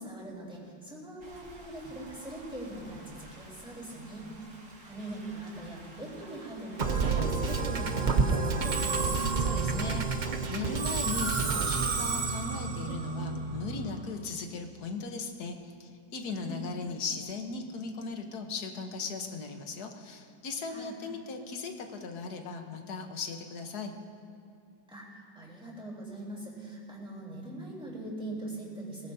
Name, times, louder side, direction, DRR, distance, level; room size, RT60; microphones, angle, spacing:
voice 1, 0.0-4.3 4.8-9.3 16.4-16.7 20.7-21.0 24.9-29.1, right 1 dB, 5° right, -5 dB, 3.5 m, -42 dB
sound 1, 1.2-7.7, right 2 dB, 60° right, 2.2 m, -52 dB
Musical instrument, 6.8-14.1, right 4 dB, 75° right, 0.4 m, -29 dB
voice 2, 9.4-23.9, left 4 dB, 60° left, 4 dB, 1.6 m, -38 dB
22.0 x 17.5 x 2.8 m, 2.4 s
omnidirectional pair, 1.9 m